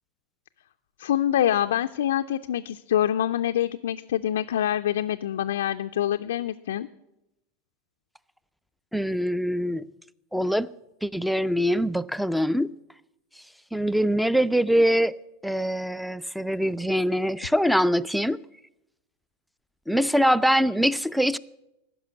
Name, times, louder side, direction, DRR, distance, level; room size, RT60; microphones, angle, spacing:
voice 1, 1.0-6.9, left 11 dB, 70° left, 0.3 m, -25 dB
voice 2, 8.9-9.8 10.3-10.7 11.0-12.7 13.7-15.1 15.4-18.4 19.9-21.4, equal, ahead, 0.4 m, -23 dB
15.5 x 6.1 x 8.3 m
figure-of-eight pair, 85°, 0 cm